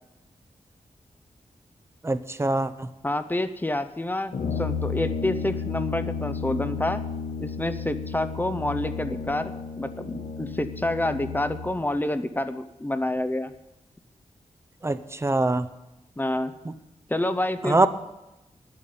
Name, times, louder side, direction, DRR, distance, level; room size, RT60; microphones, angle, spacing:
voice 1, 2.0-2.9 14.8-15.7 17.6-17.9, right 2 dB, 20° right, 12 dB, 0.7 m, -23 dB
voice 2, 3.0-7.0 7.4-13.5 16.2-16.5 17.1-17.9, left 1 dB, 15° left, 11 dB, 0.7 m, -28 dB
Brass instrument, 4.3-11.8, left 5 dB, 75° left, 1.2 m, -33 dB
10.5 x 8.7 x 9.4 m, 0.95 s
wide cardioid pair, 145°, 13 cm